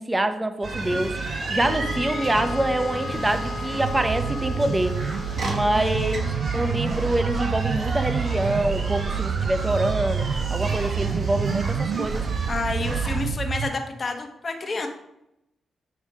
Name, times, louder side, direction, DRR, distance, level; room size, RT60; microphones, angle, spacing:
voice 1, 0.0-5.0 5.4-6.2 6.5-12.5, right 1 dB, 20° right, 8 dB, 0.9 m, -26 dB
sound 1, 0.6-13.3, right 3 dB, 55° right, 1.5 m, -31 dB
Wind instrument woodwind instrument, 1.6-5.7, left 4 dB, 70° left, 0.5 m, -36 dB
sound 2, 3.8-13.7, right 7 dB, 85° right, 0.3 m, -28 dB
voice 2, 5.7-7.1 12.5-14.9, left 3 dB, 45° left, 4 dB, 1.3 m, -31 dB
8.5 x 3.6 x 5.0 m, 0.84 s
cardioid pair, 60°, 0 cm